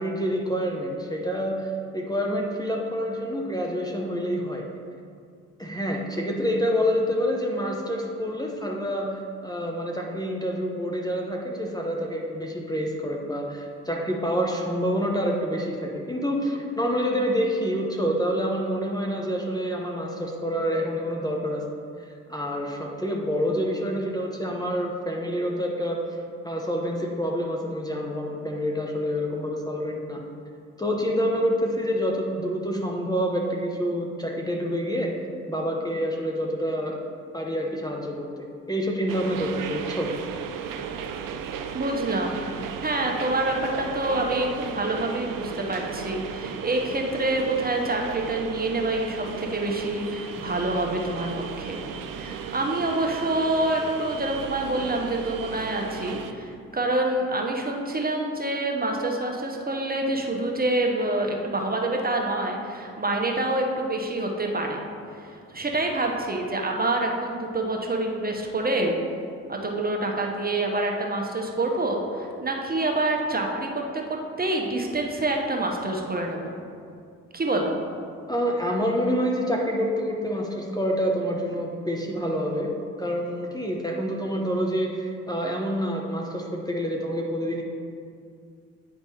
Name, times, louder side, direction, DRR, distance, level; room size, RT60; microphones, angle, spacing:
voice 1, 0.0-4.7 5.6-21.7 22.3-26.0 26.4-30.3 30.8-35.1 35.5-37.0 37.3-40.1 42.3-42.5 78.3-82.7 83.0-87.6, equal, 10° left, -1 dB, 0.8 m, -27 dB
sound 1, 39.1-56.3, right 7 dB, 65° right, 0.6 m, -35 dB
voice 2, 41.7-42.4 42.8-51.8 52.1-64.8 65.1-68.9 69.5-73.8 74.1-76.5 77.3-77.8, right 2 dB, 25° right, 1 dB, 1.0 m, -27 dB
9.3 x 3.4 x 4.2 m, 2.3 s
hypercardioid pair, 45°, 36 cm